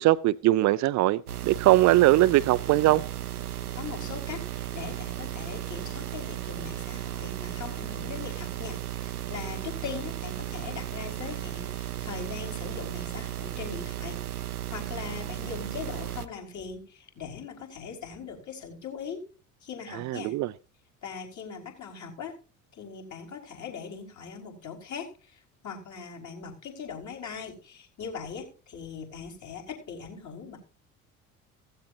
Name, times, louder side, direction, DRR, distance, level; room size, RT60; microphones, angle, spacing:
voice 1, 0.0-3.0 19.9-20.5, right 16 dB, 40° right, 0.6 m, -21 dB
sound 1, 1.3-16.3, right 12 dB, 85° right, 0.8 m, -35 dB
voice 2, 3.8-19.3 19.6-20.4 21.0-22.4 22.7-30.6, left 6 dB, 40° left, 5.6 m, -40 dB
16.5 x 15.5 x 2.8 m
figure-of-eight pair, 60°, 43 cm